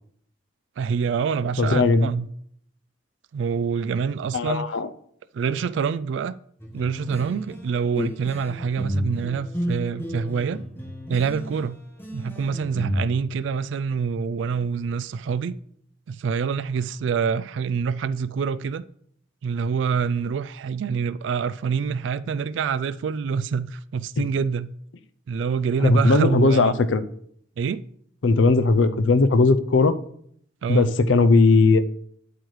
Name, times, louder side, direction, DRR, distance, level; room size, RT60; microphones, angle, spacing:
voice 1, 0.8-2.3 3.3-4.7 5.3-6.4 6.7-10.6 11.1-11.8 12.1-15.6 16.1-18.8 19.4-24.7 25.3-26.8 27.6-27.8 30.6-30.9, right 6 dB, 80° right, 0.3 m, -26 dB
voice 2, 1.6-2.1 4.3-4.9 8.0-8.1 24.2-24.3 25.8-27.0 28.2-30.0 30.7-31.8, left 3 dB, 90° left, 0.6 m, -18 dB
sound 1, 6.6-13.0, equal, 10° left, 1.3 m, -33 dB
9.4 x 8.0 x 3.2 m
head